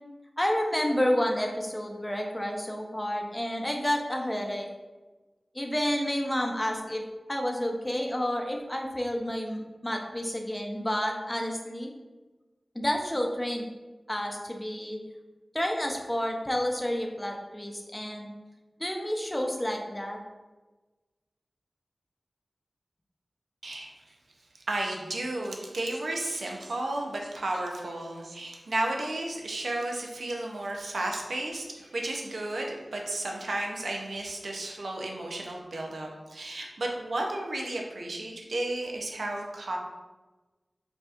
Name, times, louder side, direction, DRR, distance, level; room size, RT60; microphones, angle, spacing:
voice 1, 0.4-4.7 5.5-7.0 7.3-11.9 12.7-13.7 14.1-15.0 15.5-18.3 18.8-20.2, equal, 15° left, 1 dB, 0.6 m, -30 dB
voice 2, 24.7-39.8, right 2 dB, 85° right, 0 dB, 0.6 m, -33 dB
4.7 x 2.7 x 2.4 m, 1.2 s
wide cardioid pair, 55°, 0 cm